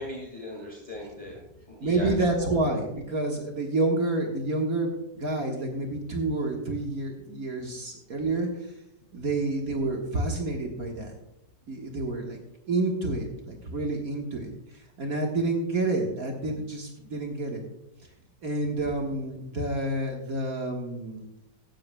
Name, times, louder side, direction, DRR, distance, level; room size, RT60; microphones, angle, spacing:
voice 1, 0.0-2.1 2.4-2.5, left 1 dB, 25° left, -3 dB, 2.2 m, -39 dB
voice 2, 1.8-8.7 9.1-11.2 11.7-12.4 12.7-17.6 18.4-21.2, right 2 dB, 55° right, 1 dB, 1.9 m, -29 dB
15.5 x 11.5 x 2.3 m, 0.85 s
omnidirectional pair, 1.9 m